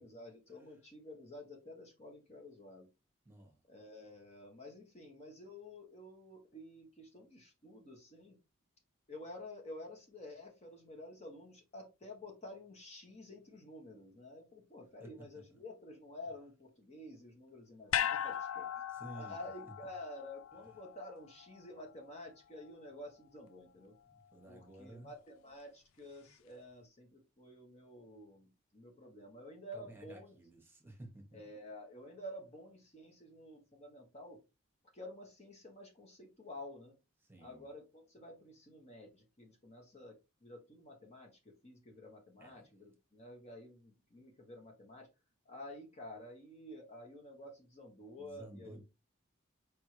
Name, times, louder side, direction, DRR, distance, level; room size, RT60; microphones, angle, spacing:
voice 1, 0.0-2.9 3.7-8.4 9.1-18.8 19.1-23.9 24.5-30.3 31.3-34.4 34.9-36.9 37.4-45.1 45.4-48.8, left 1 dB, 30° left, 1.2 m, -51 dB
sound 1, 17.9-22.3 22.6-22.7, left 10 dB, 70° left, 0.3 m, -39 dB
voice 2, 18.9-19.5 24.3-25.1 29.7-31.2 37.3-37.6 42.4-42.7 48.2-48.8, right 1 dB, 10° right, 1.2 m, -52 dB
4.7 x 3.5 x 3.1 m
head